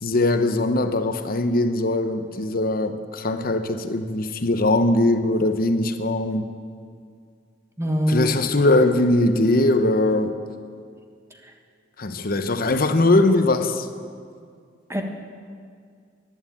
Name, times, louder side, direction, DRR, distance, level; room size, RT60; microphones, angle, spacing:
voice 1, 0.0-6.5 8.1-10.4 12.0-13.9, left 2 dB, 55° left, 9 dB, 0.9 m, -21 dB
voice 2, 7.8-8.4 11.3-11.5 14.9-15.0, equal, 15° right, 3 dB, 1.3 m, -24 dB
11.0 x 11.0 x 8.7 m, 2.2 s
head